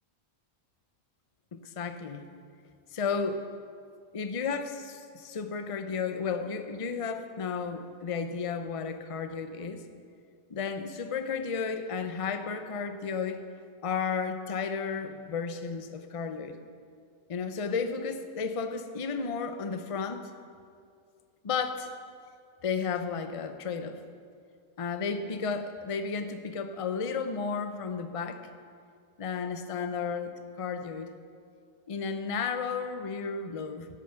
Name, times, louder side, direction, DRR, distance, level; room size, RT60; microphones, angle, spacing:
voice 1, 1.5-2.3 2.9-3.4 4.1-9.8 10.5-13.4 13.8-16.6 17.3-20.3 21.4-21.9 22.6-24.0 24.8-28.5 29.2-31.1 31.9-33.9, left 5 dB, 35° left, 9 dB, 0.5 m, -33 dB
12.5 x 10.0 x 6.7 m, 2.3 s
omnidirectional pair, 1.5 m